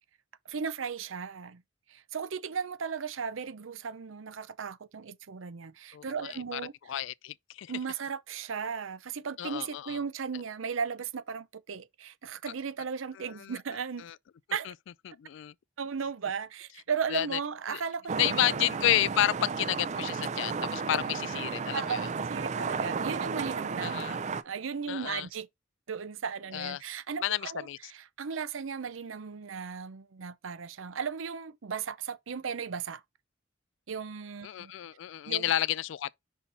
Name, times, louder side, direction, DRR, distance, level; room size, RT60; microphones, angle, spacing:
voice 1, 0.5-1.6 1.9-6.7 7.7-14.1 14.5-14.7 15.8-18.7 21.7-25.5 25.9-33.0 33.9-34.7 35.3-35.5, right 6 dB, 85° right, 0.6 m, -36 dB
voice 2, 6.3-6.6 6.9-7.7 9.4-10.0 13.4-13.5 14.0-14.1 15.1-15.5 17.1-17.3 17.7-17.8 18.2-22.0 23.8-24.2 24.9-25.3 26.5-26.8 27.2-27.8 34.4-36.2, left 12 dB, 70° left, 0.3 m, -30 dB
sound 1, 18.1-24.4, right 5 dB, 35° right, 0.5 m, -33 dB
5.7 x 4.1 x 4.2 m
head